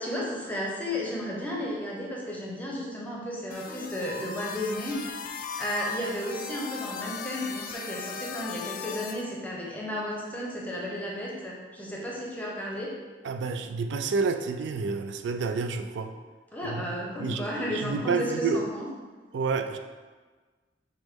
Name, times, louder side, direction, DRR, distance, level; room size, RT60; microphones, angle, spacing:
voice 1, 0.0-12.9 16.5-18.9, equal, 10° left, -3 dB, 0.7 m, -33 dB
sound 1, 3.5-9.2, left 6 dB, 50° left, 0.3 m, -38 dB
voice 2, 13.2-16.1 16.6-17.5 17.7-18.6 19.3-19.8, right 4 dB, 80° right, 7 dB, 0.3 m, -29 dB
6.2 x 2.1 x 3.6 m, 1.4 s
head